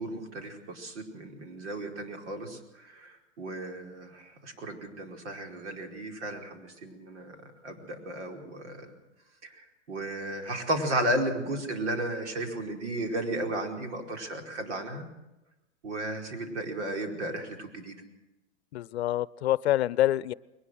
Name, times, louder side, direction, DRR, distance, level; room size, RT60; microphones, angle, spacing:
voice 1, 0.0-8.9 9.4-15.1 15.8-17.9, right 1 dB, 75° right, 4 dB, 4.9 m, -34 dB
voice 2, 18.7-20.3, left 14 dB, 65° left, 20 dB, 0.7 m, -26 dB
21.5 x 20.0 x 6.5 m, 0.97 s
supercardioid pair, 165°, 35 cm